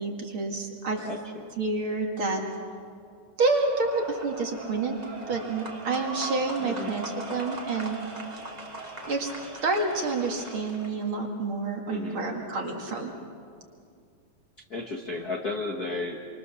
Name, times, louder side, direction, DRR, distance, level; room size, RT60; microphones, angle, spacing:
voice 1, 0.0-1.1 1.6-2.4 3.4-5.0 5.3-8.0 9.1-9.3 9.6-13.1, right 3 dB, 45° right, 2 dB, 2.6 m, -28 dB
voice 2, 0.9-1.6 6.6-6.9 11.9-12.2 14.7-16.2, left 3 dB, 45° left, 0 dB, 1.4 m, -34 dB
sound 1, 3.7-11.0, right 2 dB, 15° right, 2.0 m, -39 dB
27.5 x 25.0 x 7.0 m, 2.3 s
omnidirectional pair, 3.6 m